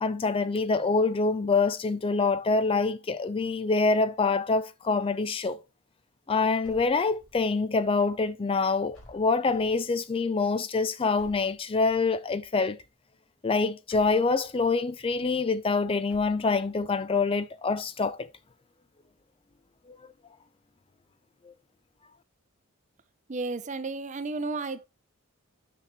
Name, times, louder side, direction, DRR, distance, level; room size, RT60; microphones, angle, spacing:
voice 1, 0.0-5.6 6.3-12.8 13.4-18.3 19.9-20.0 21.4-21.5, left 4 dB, 25° left, 0.4 m, -26 dB
sound 1, 6.6-7.6 8.9-9.9 11.2-12.1 13.9-14.8 16.1-16.9, equal, 70° left, 5.0 m, -55 dB
voice 2, 23.3-24.8, right 3 dB, 35° right, 0.6 m, -32 dB
9.3 x 5.8 x 3.1 m
head